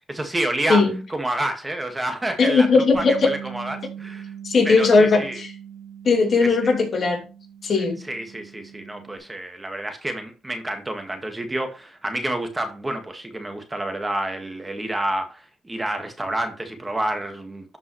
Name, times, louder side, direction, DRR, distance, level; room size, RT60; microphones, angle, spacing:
voice 1, 0.1-2.7 2.9-4.3 4.6-5.4 6.4-6.5 8.1-17.8, right 1 dB, 15° right, 1.7 m, -29 dB
voice 2, 2.4-3.3 4.4-5.5 6.0-7.2 7.6-8.0, left 4 dB, 50° left, 2.8 m, -18 dB
Bass guitar, 2.9-9.2, right 8 dB, 85° right, 3.6 m, -40 dB
12.5 x 5.3 x 3.2 m
cardioid pair, 90°, 0 cm